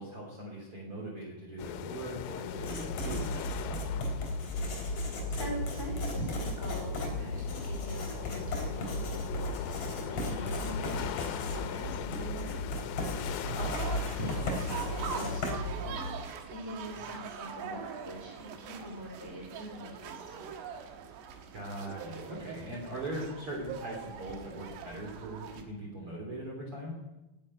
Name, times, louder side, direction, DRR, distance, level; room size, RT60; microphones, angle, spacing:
voice 1, 0.0-4.1 13.4-13.7 21.5-27.0, right 1 dB, 35° right, -2 dB, 3.1 m, -40 dB
sound 1, 1.6-15.4, left 11 dB, 90° left, 3.0 m, -40 dB
Writing, 2.5-16.3, left 1 dB, 35° left, 4.5 m, -35 dB
voice 2, 5.3-9.6 10.1-12.8 13.6-20.4, right 1 dB, 5° left, -1 dB, 2.6 m, -43 dB
sound 2, 13.6-25.6, right 7 dB, 80° right, 3.3 m, -43 dB
11.5 x 9.9 x 9.5 m, 1.0 s
omnidirectional pair, 4.9 m